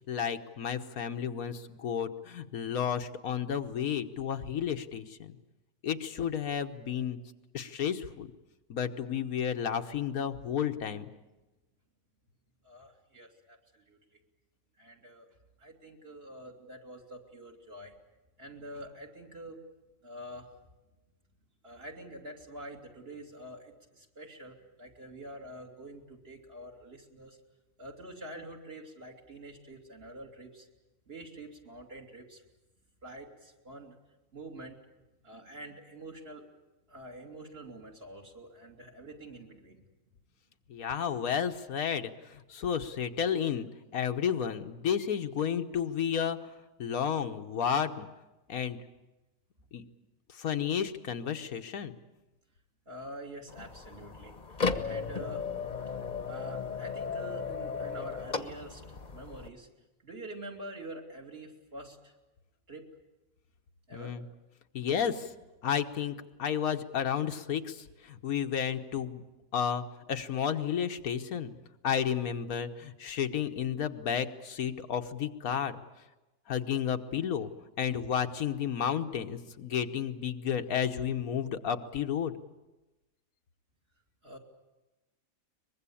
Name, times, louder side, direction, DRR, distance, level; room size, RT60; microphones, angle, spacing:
voice 1, 0.1-5.4 5.8-7.2 7.5-8.3 8.7-11.1 40.7-46.4 46.8-48.1 48.5-48.8 49.7-49.8 50.3-51.9 63.9-64.2 64.7-65.3 65.6-66.1 66.4-69.2 69.5-71.5 71.8-75.7 76.5-77.5 77.8-82.3, left 8 dB, 90° left, 7 dB, 1.6 m, -32 dB
voice 2, 12.6-14.0 14.8-15.3 15.6-17.9 18.4-19.6 20.0-20.5 21.6-27.4 27.8-30.7 31.1-32.4 33.0-34.0 34.3-34.8 35.2-36.5 36.9-39.8 52.9-55.5 56.2-59.7 60.0-62.1 62.7-62.9 63.9-64.2 84.2-84.4, right 1 dB, 45° right, 1 dB, 2.9 m, -46 dB
sound 1, 53.5-59.5, left 5 dB, 35° left, 1.2 m, -36 dB
23.5 x 21.0 x 8.6 m, 1.1 s
omnidirectional pair, 1.5 m